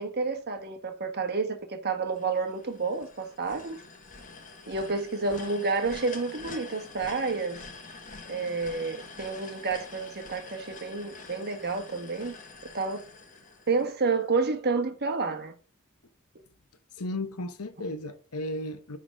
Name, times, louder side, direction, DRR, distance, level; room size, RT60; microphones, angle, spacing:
voice 1, 0.0-3.8 4.7-7.6 8.3-12.3 12.7-13.0 13.7-15.5, right 4 dB, 45° right, 1.4 m, -30 dB
sound 1, 2.1-14.2, left 4 dB, 35° left, 1.4 m, -46 dB
voice 2, 16.9-19.0, left 1 dB, 80° left, 1.0 m, -34 dB
9.9 x 3.9 x 5.0 m
head